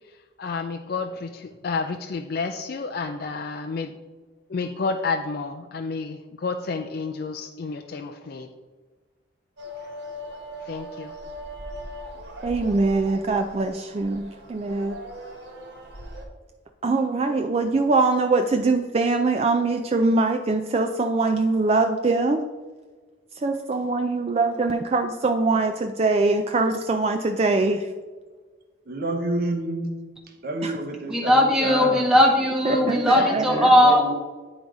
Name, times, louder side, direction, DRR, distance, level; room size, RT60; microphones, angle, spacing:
voice 1, 0.0-3.9 4.5-8.5 10.6-11.1 29.8-30.0 33.1-33.8, left 4 dB, 50° left, 5 dB, 0.3 m, -31 dB
sound 1, 9.6-16.2, equal, 65° right, 1.5 m, -39 dB
voice 2, 12.4-15.0 16.8-22.5 23.4-27.9 30.6-30.7 32.7-33.7, right 3 dB, 30° right, 6 dB, 0.3 m, -23 dB
voice 3, 28.9-30.0 30.4-32.0 32.7-34.1, right 2 dB, 50° right, 3 dB, 0.8 m, -29 dB
voice 4, 31.1-34.1, left 1 dB, 5° right, 0 dB, 0.7 m, -18 dB
9.4 x 3.9 x 4.7 m, 1.4 s
head